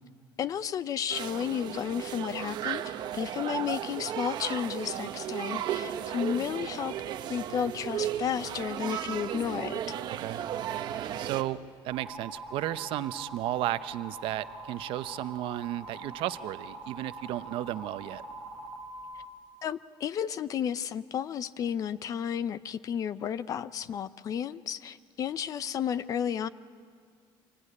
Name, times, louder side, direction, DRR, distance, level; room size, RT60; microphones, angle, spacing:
voice 1, 0.4-6.9 7.3-10.0 19.6-26.5, left 8 dB, 40° left, 16 dB, 0.6 m, -32 dB
sound 1, 1.1-11.4, right 10 dB, 50° right, 1.1 m, -35 dB
voice 2, 11.2-11.6 11.8-18.2, right 14 dB, 65° right, 12 dB, 0.8 m, -33 dB
sound 2, 11.9-19.2, right 2 dB, ahead, 2.9 m, -43 dB
26.0 x 23.5 x 9.9 m, 2.2 s
cardioid pair, 175°, 10 cm